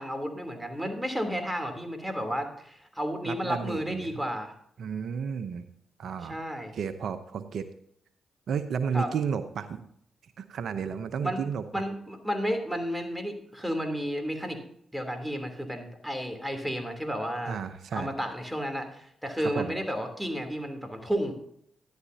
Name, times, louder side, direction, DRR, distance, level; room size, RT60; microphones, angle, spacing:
voice 1, 0.0-4.5 6.2-6.7 8.9-9.1 11.2-11.4 11.7-14.6 14.9-17.6 17.9-21.3, equal, 5° right, 6 dB, 3.1 m, -32 dB
voice 2, 3.2-4.1 4.8-5.7 6.0-6.4 6.7-7.7 8.5-9.8 10.4-11.8 17.4-18.1 19.4-19.7, right 6 dB, 70° right, 10 dB, 0.7 m, -32 dB
13.0 x 11.0 x 2.8 m, 0.70 s
supercardioid pair, 50°, 0 cm